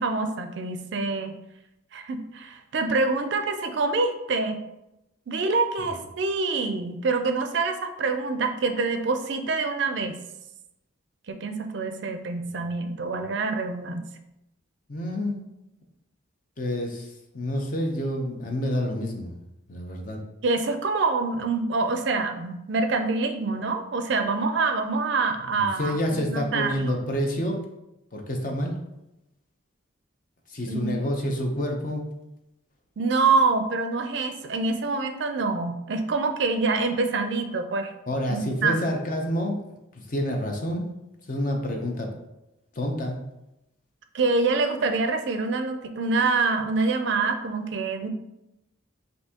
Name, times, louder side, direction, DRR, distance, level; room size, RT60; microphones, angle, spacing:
voice 1, 0.0-1.4 1.9-4.6 5.3-10.2 11.3-14.1 20.4-26.0 26.3-27.0 30.7-30.9 33.0-37.9 38.3-38.9 44.1-48.1, right 3 dB, 60° right, 7 dB, 0.4 m, -26 dB
voice 2, 14.9-15.4 16.6-19.3 19.7-20.2 25.5-27.6 28.1-28.7 30.5-32.0 38.1-39.6 39.9-40.9 41.3-42.1 42.7-43.2, left 1 dB, 40° left, 2 dB, 0.6 m, -28 dB
5.5 x 2.6 x 2.8 m, 0.89 s
head